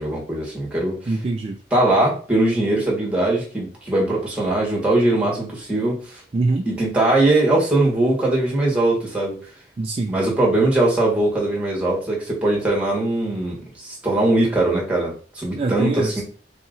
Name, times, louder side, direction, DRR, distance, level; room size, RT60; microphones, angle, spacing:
voice 1, 0.0-1.2 1.7-6.2 6.6-9.4 10.1-16.2, right 2 dB, 5° right, -3 dB, 1.5 m, -21 dB
voice 2, 1.1-1.6 6.3-6.7 9.8-10.1 15.6-16.2, right 3 dB, 30° right, 3 dB, 0.3 m, -23 dB
3.8 x 3.0 x 3.9 m, 0.41 s
head